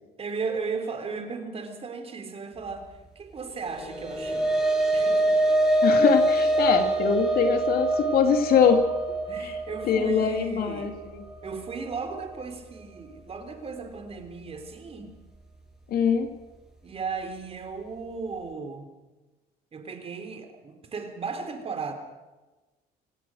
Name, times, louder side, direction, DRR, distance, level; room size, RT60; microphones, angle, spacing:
voice 1, 0.2-2.9 3.2-4.5 4.9-5.4 9.3-10.9 11.4-15.2 16.8-18.9 19.7-21.9, right 4 dB, 35° right, 6 dB, 3.7 m, -36 dB
sound 1, 3.6-12.2, right 1 dB, ahead, 7.6 m, -25 dB
voice 2, 5.8-8.8 9.4-9.6 9.8-11.3 15.9-16.3, left 7 dB, 65° left, 6 dB, 2.7 m, -23 dB
26.5 x 17.5 x 6.4 m, 1.2 s
cardioid pair, 110°, 17 cm